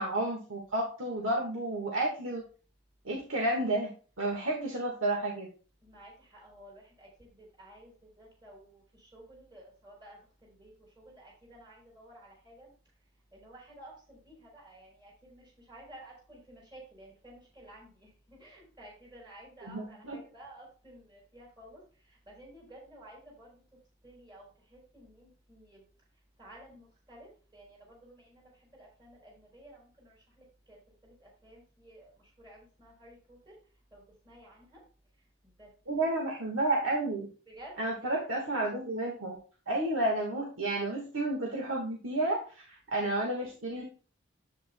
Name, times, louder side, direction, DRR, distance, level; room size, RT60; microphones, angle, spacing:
voice 1, 0.0-2.4 3.0-3.9 4.2-5.5 19.6-20.2 35.9-37.3 37.8-39.4 39.7-42.6 42.9-43.8, right 1 dB, 80° right, -1 dB, 1.5 m, -31 dB
voice 2, 5.8-12.7 13.3-21.8 22.1-23.6 24.0-25.8 26.4-30.8 31.0-33.5 33.9-34.8 35.4-35.7 36.0-36.2 37.5-38.1, right 1 dB, 20° right, -2 dB, 3.9 m, -53 dB
10.0 x 8.4 x 2.2 m, 0.38 s
head